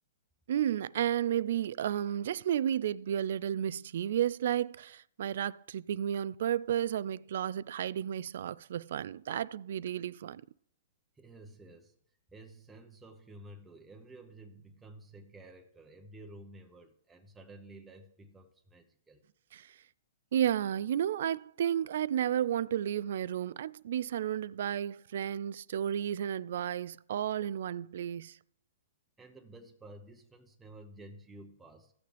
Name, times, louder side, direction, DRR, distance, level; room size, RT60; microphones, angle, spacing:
voice 1, 0.5-10.4 19.5-19.7 20.3-28.4, right 10 dB, 65° right, 0.3 m, -32 dB
voice 2, 11.2-11.9 12.3-19.2 29.2-31.9, right 2 dB, 10° right, 0.9 m, -52 dB
15.5 x 6.7 x 3.4 m
hypercardioid pair, 135°, 0 cm